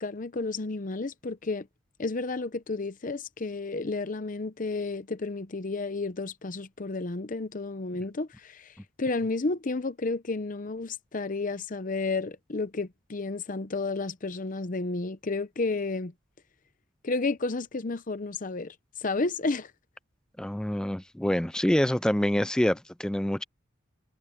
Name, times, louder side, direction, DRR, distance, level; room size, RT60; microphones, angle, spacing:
voice 1, 0.0-1.7 2.0-16.1 17.0-19.7, left 3 dB, 40° left, 0.7 m, -32 dB
voice 2, 20.4-23.4, equal, 5° left, 0.3 m, -26 dB
head